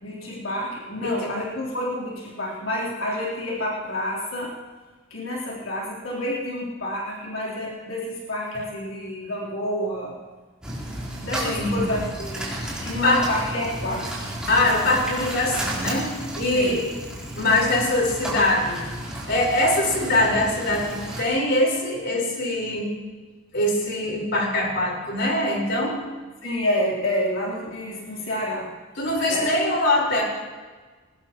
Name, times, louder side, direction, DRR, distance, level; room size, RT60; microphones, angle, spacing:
voice 1, 0.0-4.5 5.1-10.2 11.2-12.5 12.8-14.1 16.5-16.8 26.4-28.7 29.3-29.7, left 1 dB, 80° left, -5 dB, 3.7 m, -29 dB
sound 1, 10.6-21.2, right 1 dB, 5° right, 4.0 m, -33 dB
voice 2, 11.4-11.9 12.9-13.2 14.5-16.9 17.4-18.9 19.3-22.9 23.5-26.0 29.0-30.2, left 1 dB, 60° left, -1 dB, 4.5 m, -23 dB
21.5 x 19.5 x 3.0 m, 1.4 s
head